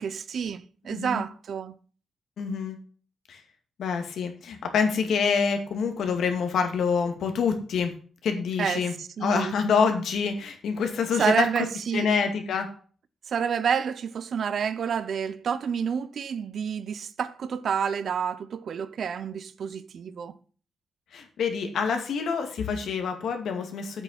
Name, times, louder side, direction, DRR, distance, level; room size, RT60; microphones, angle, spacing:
voice 1, 0.0-1.7 8.6-8.9 9.2-9.5 11.2-12.1 13.3-20.3, right 7 dB, 55° right, 0.7 m, -29 dB
voice 2, 0.9-1.2 2.4-2.8 3.3-3.4 3.8-7.9 8.2-8.9 9.2-11.7 11.9-12.7 21.1-24.0, left 6 dB, 80° left, 2.2 m, -26 dB
8.1 x 6.8 x 7.3 m
wide cardioid pair, 150°, 0 cm